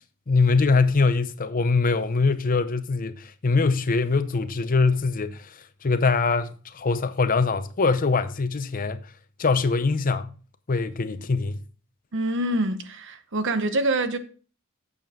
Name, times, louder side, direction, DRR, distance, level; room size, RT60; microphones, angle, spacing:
voice 1, 0.3-9.0 9.4-10.3 10.7-11.6, left 4 dB, 40° left, 0.6 m, -23 dB
voice 2, 12.1-14.2, right 1 dB, 60° right, 0.9 m, -25 dB
8.4 x 6.9 x 3.6 m
head